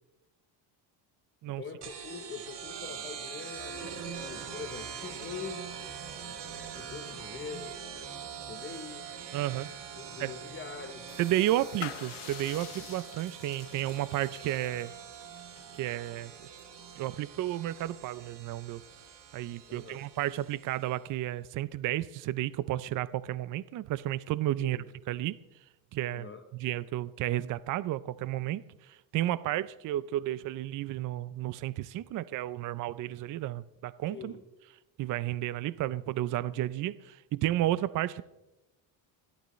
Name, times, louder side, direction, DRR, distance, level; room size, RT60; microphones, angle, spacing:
voice 1, 1.5-5.7 6.7-7.8 8.4-9.1 10.0-11.1 19.7-20.0 24.6-24.9 26.1-26.4 34.1-34.4, left 5 dB, 25° left, 0.8 m, -43 dB
sound 1, 1.8-21.0, right 7 dB, 65° right, 2.5 m, -44 dB
voice 2, 9.3-9.7 10.2-10.3 11.2-14.9 15.8-16.5 17.0-18.8 19.3-24.8 25.1-25.4 25.9-26.3 26.6-28.6 29.1-34.3 35.0-38.2, right 14 dB, 45° right, 0.4 m, -32 dB
sound 2, 11.1-17.7, left 19 dB, 85° left, 0.7 m, -48 dB
27.0 x 12.0 x 3.1 m
cardioid pair, 135°, 45 cm